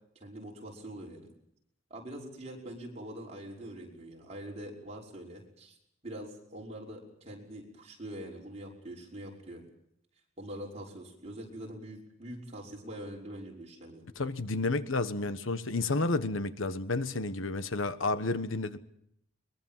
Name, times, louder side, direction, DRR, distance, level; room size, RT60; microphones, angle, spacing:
voice 1, 0.2-1.3 1.9-5.8 6.0-9.7 10.4-14.1, right 1 dB, 30° right, -2 dB, 5.7 m, -44 dB
voice 2, 14.2-18.8, left 3 dB, 75° left, 12 dB, 1.3 m, -31 dB
22.5 x 22.5 x 7.5 m, 0.73 s
head